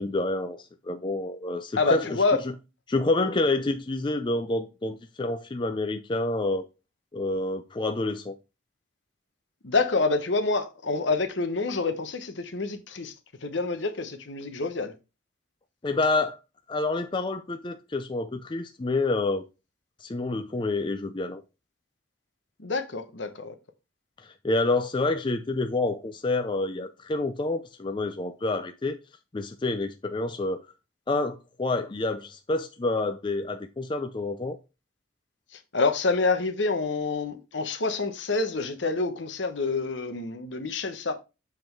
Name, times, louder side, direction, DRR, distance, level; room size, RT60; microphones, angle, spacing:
voice 1, 0.0-2.1 2.9-6.7 7.1-8.4 15.8-16.4 16.7-19.4 20.0-21.4 24.2-29.0 29.3-30.6 31.1-34.6, left 2 dB, 25° left, 0.4 m, -28 dB
voice 2, 1.8-2.4 9.6-13.1 13.4-14.9 22.6-23.6 35.5-41.1, left 3 dB, 70° left, 1.0 m, -27 dB
7.5 x 3.8 x 4.5 m
head